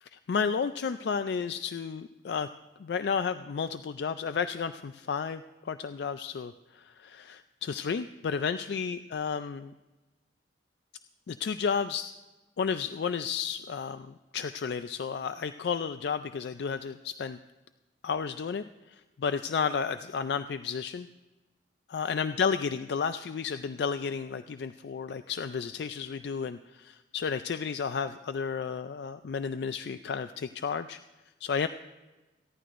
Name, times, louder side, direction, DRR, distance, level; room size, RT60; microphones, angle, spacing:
voice 1, 0.0-2.5 2.8-9.7 11.3-12.1 12.6-17.4 18.0-21.1 21.9-31.0 31.4-31.7, left 6 dB, 65° left, 11 dB, 0.3 m, -32 dB
27.5 x 11.0 x 2.5 m, 1.1 s
head